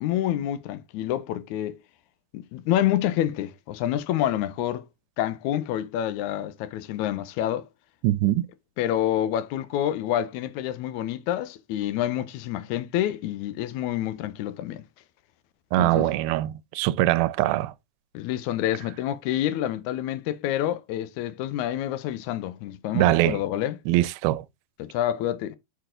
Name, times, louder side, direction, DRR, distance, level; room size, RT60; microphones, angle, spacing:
voice 1, 0.0-1.8 2.3-4.9 5.2-7.7 8.8-14.8 15.8-16.1 18.1-23.8 24.8-25.6, left 12 dB, 80° left, 1.7 m, -28 dB
voice 2, 8.0-8.5 15.7-17.7 22.9-23.4 23.9-24.5, right 16 dB, 85° right, 2.3 m, -22 dB
6.6 x 4.1 x 3.7 m
omnidirectional pair, 4.1 m